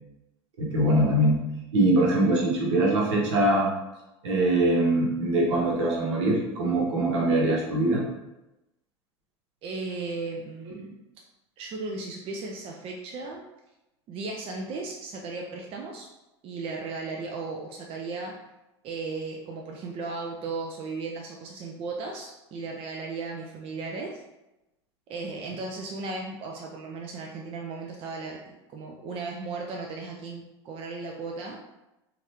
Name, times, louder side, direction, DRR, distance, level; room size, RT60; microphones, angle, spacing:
voice 1, 0.6-1.4 1.7-3.7 4.2-8.0, right 1 dB, 75° right, -3 dB, 1.0 m, -23 dB
voice 2, 9.6-11.0 11.6-13.4 14.1-16.1 16.4-18.4 18.8-24.2 25.1-31.6, right 3 dB, 40° right, 0 dB, 0.5 m, -36 dB
3.0 x 2.5 x 2.9 m, 0.96 s
hypercardioid pair, 80°, 15 cm